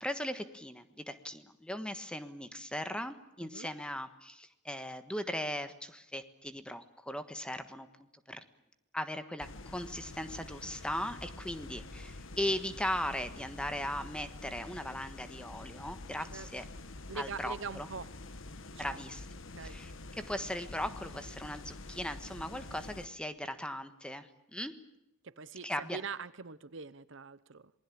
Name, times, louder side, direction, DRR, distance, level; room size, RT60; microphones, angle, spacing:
voice 1, 0.0-7.9 8.3-8.4 8.9-16.6 17.1-17.9 18.8-19.2 19.6-19.9 20.3-24.7 25.6-26.0, left 1 dB, 5° left, 9 dB, 1.4 m, -38 dB
sound 1, 9.4-23.1, left 2 dB, 65° left, 1.3 m, -47 dB
voice 2, 17.1-18.1 18.7-19.0 19.5-19.8 25.2-27.7, right 5 dB, 60° right, 16 dB, 0.9 m, -43 dB
27.0 x 20.0 x 8.6 m, 0.88 s
head